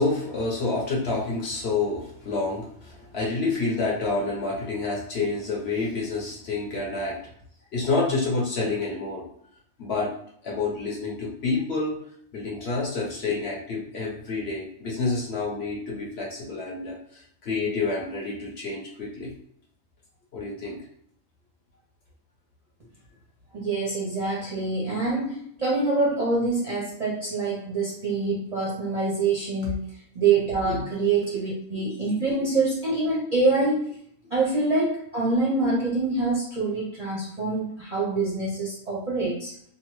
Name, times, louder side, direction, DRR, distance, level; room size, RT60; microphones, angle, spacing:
voice 1, 0.0-7.2 7.7-9.2 9.8-10.1 10.4-12.0 12.3-19.3 20.3-20.8 29.6-29.7 30.6-30.8, left 3 dB, 55° left, -4 dB, 1.1 m, -28 dB
voice 2, 23.5-29.9 30.1-33.8 34.3-39.5, right 3 dB, 45° right, -6 dB, 0.5 m, -25 dB
3.0 x 2.0 x 3.0 m, 0.66 s
omnidirectional pair, 1.4 m